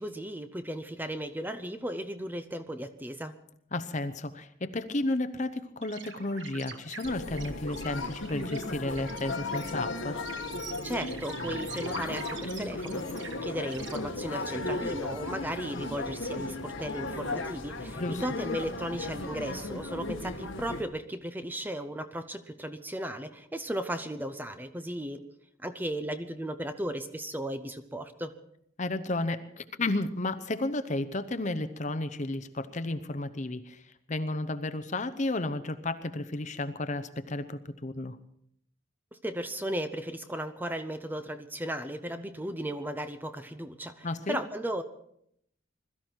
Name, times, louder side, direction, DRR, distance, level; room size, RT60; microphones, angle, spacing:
voice 1, 0.0-3.3 10.8-25.2 25.6-28.3 39.1-44.8, right 1 dB, 10° right, 9 dB, 0.7 m, -36 dB
voice 2, 3.7-10.2 18.0-18.2 28.8-33.8 34.1-38.2 44.0-44.4, left 2 dB, 35° left, 11 dB, 0.8 m, -32 dB
sound 1, 5.8-14.0, right 6 dB, 60° right, 1.5 m, -45 dB
sound 2, 7.0-20.8, left 2 dB, 75° left, 1.5 m, -36 dB
21.5 x 13.5 x 4.5 m, 0.72 s
head